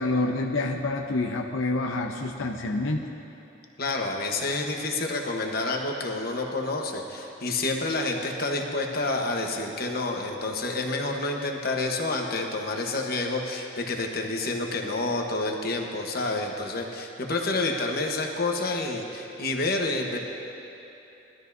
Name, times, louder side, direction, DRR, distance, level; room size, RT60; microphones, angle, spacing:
voice 1, 0.0-3.0, left 2 dB, 85° left, 1 dB, 0.7 m, -27 dB
voice 2, 3.8-20.2, left 2 dB, 50° left, 1 dB, 1.1 m, -29 dB
20.0 x 12.5 x 2.7 m, 2.9 s
head